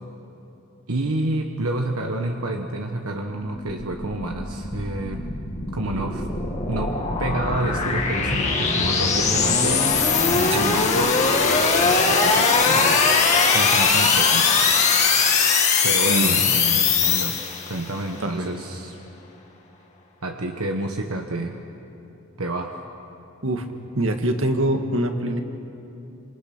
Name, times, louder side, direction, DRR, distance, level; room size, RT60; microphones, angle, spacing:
voice 1, 0.9-5.3 5.7-6.3 6.7-9.8 10.3-11.2 11.8-13.0 13.5-14.6 15.8-17.4 17.7-19.0 20.2-21.5 22.4-22.7, right 2 dB, 80° right, 3 dB, 1.3 m, -29 dB
sound 1, 3.3-17.9, left 4 dB, 30° left, 2.1 m, -21 dB
voice 2, 16.1-16.4 16.9-17.0 18.2-18.5 23.4-23.7 24.0-25.4, right 1 dB, 65° right, 5 dB, 1.9 m, -24 dB
29.0 x 26.5 x 6.0 m, 2.9 s
head